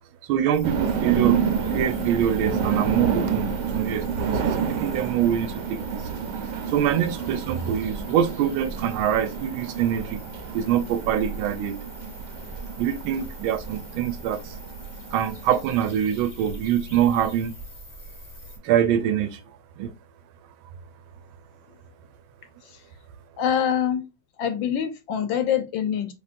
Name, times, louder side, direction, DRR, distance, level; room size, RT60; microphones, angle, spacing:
voice 1, 0.3-1.4 1.7-6.1 6.7-10.2 10.5-11.8 12.8-14.5 15.1-17.5 18.6-19.4 19.8-19.9, right 9 dB, 85° right, 1.5 m, -24 dB
sound 1, 0.5-18.6, equal, 25° left, 0.4 m, -41 dB
sound 2, 0.6-15.6, right 6 dB, 65° right, 1.2 m, -29 dB
voice 2, 23.4-24.0 24.4-26.1, left 9 dB, 75° left, 1.2 m, -25 dB
5.0 x 3.6 x 2.4 m
omnidirectional pair, 2.2 m